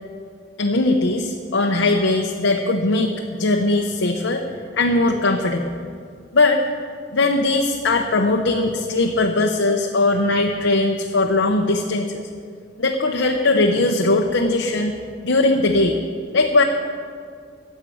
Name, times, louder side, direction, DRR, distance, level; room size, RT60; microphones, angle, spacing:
voice 1, 0.6-4.5 4.7-5.8 6.3-6.6 7.1-12.2 12.8-14.9 15.2-16.0 16.3-16.6, left 2 dB, 90° left, 2 dB, 0.8 m, -19 dB
11.0 x 7.4 x 9.2 m, 2.2 s
head